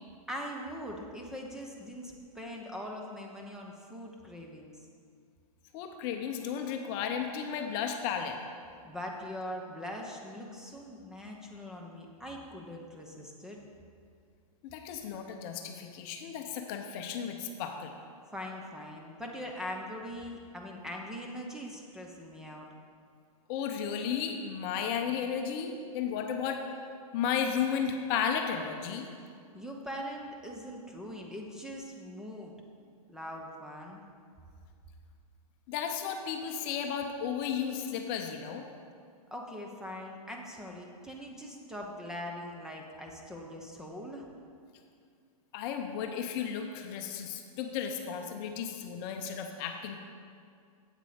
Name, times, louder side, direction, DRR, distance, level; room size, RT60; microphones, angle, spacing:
voice 1, 0.3-4.7 8.8-13.6 18.3-22.7 29.5-32.5 33.1-34.0 39.3-44.3, equal, 5° right, 0 dB, 0.8 m, -42 dB
voice 2, 5.7-8.4 14.6-17.9 23.5-26.6 27.1-29.1 35.7-38.7 45.5-50.0, left 7 dB, 40° left, 4 dB, 0.7 m, -34 dB
8.3 x 7.4 x 5.0 m, 2.3 s
hypercardioid pair, 140°, 19 cm